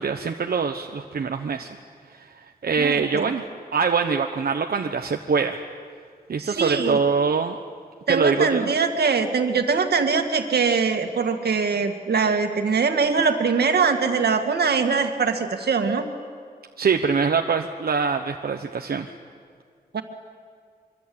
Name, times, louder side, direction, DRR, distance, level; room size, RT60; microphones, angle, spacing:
voice 1, 0.0-1.7 2.1-3.4 3.7-5.6 6.3-7.6 8.1-8.7 16.8-19.1, right 5 dB, 70° right, 4 dB, 1.1 m, -24 dB
voice 2, 2.8-3.3 6.4-7.0 8.1-16.0 19.9-20.0, right 5 dB, 90° right, 5 dB, 2.1 m, -22 dB
24.5 x 24.5 x 8.7 m, 2.1 s
wide cardioid pair, 125°, 16 cm